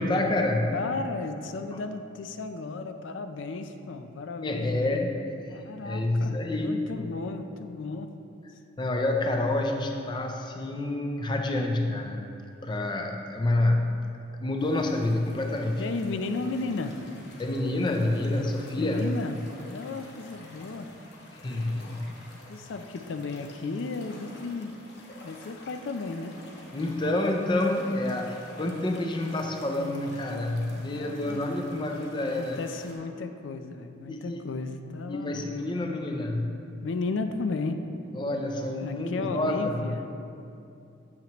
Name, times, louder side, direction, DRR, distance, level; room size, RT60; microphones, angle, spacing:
voice 1, 0.0-0.7 4.4-5.1 5.8-6.9 8.8-12.3 12.6-14.0 14.4-15.9 17.4-19.1 21.4-22.0 26.7-32.6 34.1-34.5 35.1-36.7 38.1-39.9, left 2 dB, 25° left, 3 dB, 0.5 m, -28 dB
voice 2, 0.7-5.1 5.5-8.1 15.8-17.0 18.8-19.4 19.7-20.9 22.5-24.8 25.2-26.4 30.8-31.4 32.2-35.5 36.8-37.8 38.8-40.0, left 3 dB, 80° left, 8 dB, 0.4 m, -34 dB
sound 1, 14.6-32.9, left 1 dB, 60° left, 1.1 m, -50 dB
8.7 x 7.3 x 3.0 m, 2.7 s
head